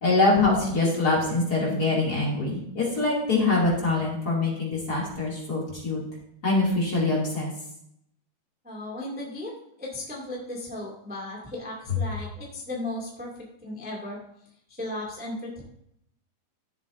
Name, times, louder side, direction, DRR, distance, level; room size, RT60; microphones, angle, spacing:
voice 1, 0.0-6.0 6.4-7.5, left 3 dB, 30° left, -4 dB, 2.4 m, -24 dB
voice 2, 8.6-9.5 9.8-13.3 13.6-14.2 14.7-15.6, left 1 dB, 5° right, -4 dB, 0.9 m, -35 dB
14.0 x 7.2 x 2.6 m, 0.74 s
omnidirectional pair, 4.2 m